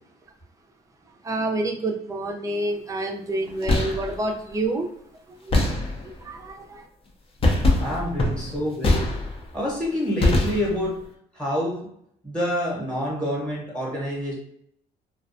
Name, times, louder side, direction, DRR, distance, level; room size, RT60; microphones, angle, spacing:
voice 1, 1.2-4.9 5.5-5.6 6.2-6.8, right 2 dB, 20° right, 2 dB, 0.5 m, -28 dB
sound 1, 3.5-4.2 5.5-6.3 7.4-9.6 10.2-11.0, left 2 dB, 35° left, 0.5 m, -23 dB
voice 2, 7.8-9.1 9.5-11.0 11.3-11.9 12.2-14.3, equal, 5° left, -4 dB, 0.9 m, -27 dB
2.4 x 2.2 x 2.6 m, 0.71 s
cardioid pair, 110°, 17 cm